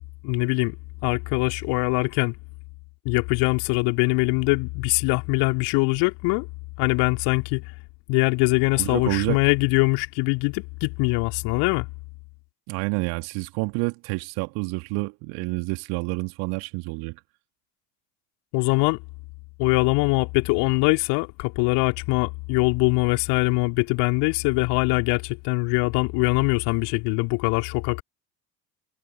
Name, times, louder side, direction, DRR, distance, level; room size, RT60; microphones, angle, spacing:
voice 1, 0.2-0.8 1.0-2.4 3.1-6.5 6.8-7.6 8.1-11.9 18.5-19.0 19.6-28.0, left 29 dB, 55° left, 3.6 m, -22 dB
voice 2, 8.8-9.4 12.7-17.2, right 30 dB, 55° right, 2.1 m, -28 dB
figure-of-eight pair, 65°, 49 cm